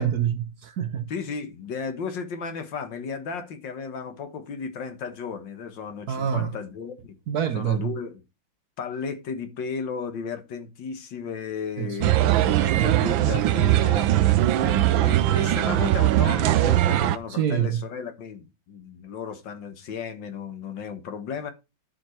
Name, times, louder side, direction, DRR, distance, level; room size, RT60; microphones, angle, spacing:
voice 1, 0.0-1.1 6.1-6.6 7.3-7.9 11.8-12.1 17.3-17.8, right 9 dB, 60° right, 1.2 m, -26 dB
voice 2, 1.1-7.2 7.5-8.2 8.8-21.5, left 6 dB, 65° left, 1.9 m, -34 dB
sound 1, 12.0-17.2, right 14 dB, 75° right, 1.4 m, -20 dB
11.5 x 5.6 x 4.3 m
omnidirectional pair, 2.2 m